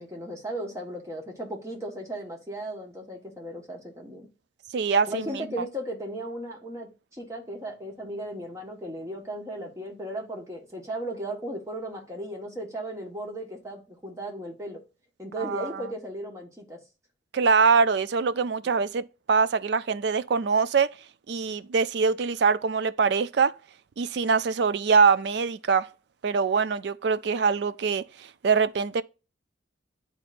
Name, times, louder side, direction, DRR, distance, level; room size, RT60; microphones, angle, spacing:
voice 1, 0.0-4.3 5.1-14.8 15.2-16.8, right 1 dB, 15° right, 1.3 m, -36 dB
voice 2, 4.7-5.3 15.4-15.7 17.3-21.0 21.3-23.5 24.0-25.9 26.2-29.0, right 5 dB, 60° right, 0.4 m, -23 dB
10.5 x 4.0 x 2.5 m
head